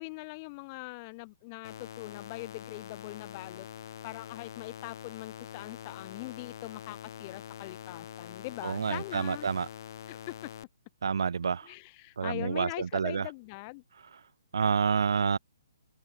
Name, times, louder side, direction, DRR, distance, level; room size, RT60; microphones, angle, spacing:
voice 1, 0.0-3.7 4.0-9.5 10.1-10.5 11.6-13.8, left 27 dB, 30° left, 3.2 m, -42 dB
sound 1, 1.6-10.6, left 9 dB, 55° left, 1.4 m, -45 dB
voice 2, 8.6-9.7 11.0-11.7 12.2-13.3 14.5-15.4, right 6 dB, 75° right, 1.1 m, -28 dB
hypercardioid pair, 145°, 2 cm